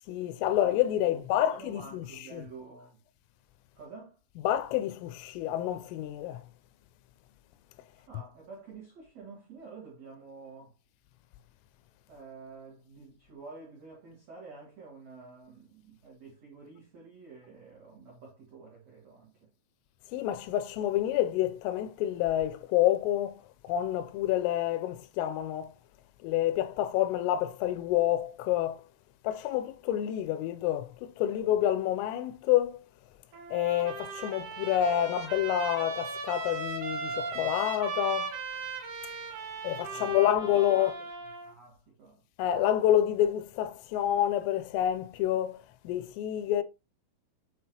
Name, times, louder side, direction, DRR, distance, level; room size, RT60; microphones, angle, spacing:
voice 1, 0.1-2.0 2.3-2.4 4.4-6.4 20.1-23.4 23.7-25.7 26.2-28.8 29.2-32.8 33.5-38.3 39.6-40.9 42.4-46.6, left 12 dB, 85° left, 3.1 m, -28 dB
voice 2, 1.0-3.0 3.7-4.2 7.9-10.7 12.1-19.5 39.9-40.2 40.7-41.1 41.4-42.2, right 4 dB, 85° right, 1.4 m, -49 dB
Trumpet, 33.3-41.5, right 4 dB, 65° right, 2.0 m, -37 dB
8.4 x 3.9 x 2.9 m
omnidirectional pair, 5.8 m